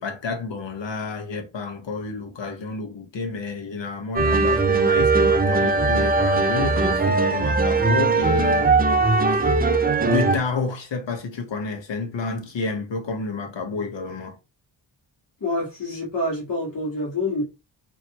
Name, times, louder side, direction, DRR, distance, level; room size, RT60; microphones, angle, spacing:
voice 1, 0.0-8.7 9.2-9.5 10.0-14.4, left 4 dB, 80° left, 1.2 m, -30 dB
sound 1, 4.2-10.4, right 3 dB, 25° right, 0.4 m, -19 dB
voice 2, 15.4-17.4, left 2 dB, 50° left, 1.7 m, -27 dB
4.3 x 3.0 x 3.0 m
wide cardioid pair, 170°, 43 cm